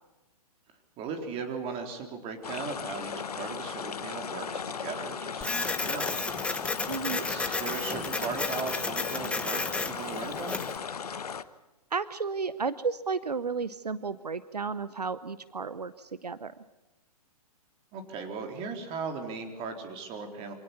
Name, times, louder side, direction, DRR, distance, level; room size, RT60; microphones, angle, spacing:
voice 1, 1.0-6.2 7.2-10.6 17.9-20.5, right 5 dB, 30° right, 4 dB, 3.8 m, -37 dB
sound 1, 2.4-11.4, left 6 dB, 75° left, 1.1 m, -37 dB
Printer, 5.4-10.8, left 3 dB, 5° left, 1.2 m, -33 dB
voice 2, 6.9-7.3 11.9-16.5, right 5 dB, 85° right, 15 dB, 0.8 m, -33 dB
25.0 x 18.0 x 7.2 m, 1.1 s
figure-of-eight pair, 120°, 20 cm